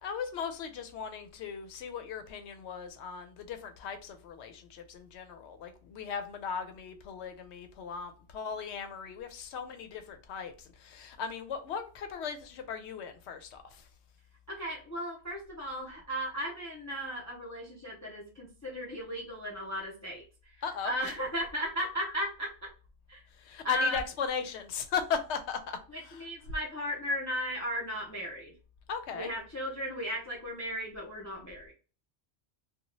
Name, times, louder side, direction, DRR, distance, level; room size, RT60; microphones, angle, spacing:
voice 1, 0.0-10.5 10.8-13.6 20.6-20.9 23.5-25.8 28.9-29.3, left 6 dB, 85° left, 0.9 m, -37 dB
voice 2, 14.5-20.2 20.8-22.5 23.1-23.2 23.6-24.0 25.9-28.5 29.1-31.7, equal, 20° left, 0.5 m, -35 dB
2.7 x 2.3 x 2.9 m
omnidirectional pair, 1.1 m